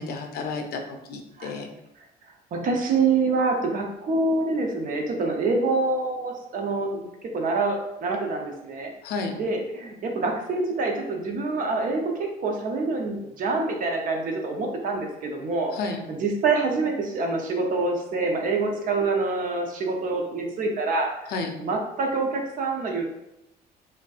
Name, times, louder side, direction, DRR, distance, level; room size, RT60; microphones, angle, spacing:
voice 1, 0.0-1.7 9.0-9.3 15.7-16.0 21.3-21.5, left 4 dB, 65° left, 4 dB, 0.6 m, -31 dB
voice 2, 2.5-8.9 9.4-15.7 16.1-21.3 21.6-23.0, right 3 dB, 55° right, 2 dB, 0.7 m, -26 dB
4.3 x 2.6 x 2.4 m, 0.87 s
cardioid pair, 110°, 17 cm